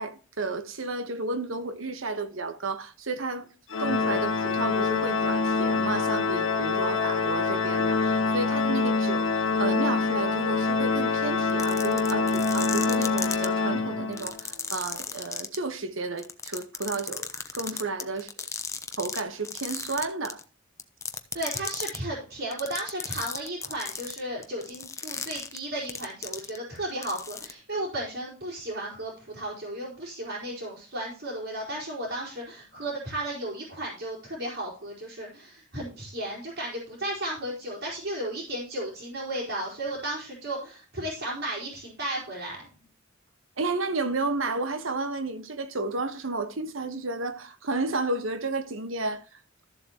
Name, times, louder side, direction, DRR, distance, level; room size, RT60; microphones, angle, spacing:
voice 1, 0.0-3.5 3.8-18.3 19.0-20.4 43.6-49.2, right 3 dB, 85° right, 1.3 m, -32 dB
Organ, 3.7-14.4, left 4 dB, 85° left, 1.1 m, -25 dB
sound 1, 11.5-13.4 14.1-15.6 16.2-19.2 19.4-20.4 20.8-22.0 22.5-26.8 27.0-27.5, left 5 dB, 15° left, 0.9 m, -34 dB
voice 2, 21.3-42.7, right 1 dB, 65° right, 4.4 m, -34 dB
14.0 x 7.5 x 3.0 m
head